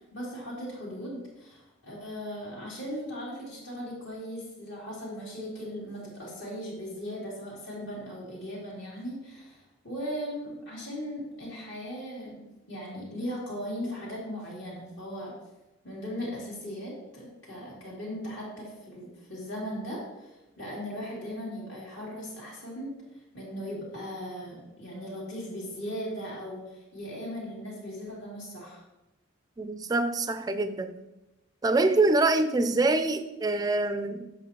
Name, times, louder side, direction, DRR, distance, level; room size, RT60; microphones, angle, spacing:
voice 1, 0.1-15.3 15.8-22.9 23.3-28.8, equal, 65° left, 2.6 m, -38 dB
voice 2, 29.6-30.9 31.6-34.3, right 2 dB, 20° right, 0.3 m, -25 dB
7.9 x 6.0 x 2.9 m
head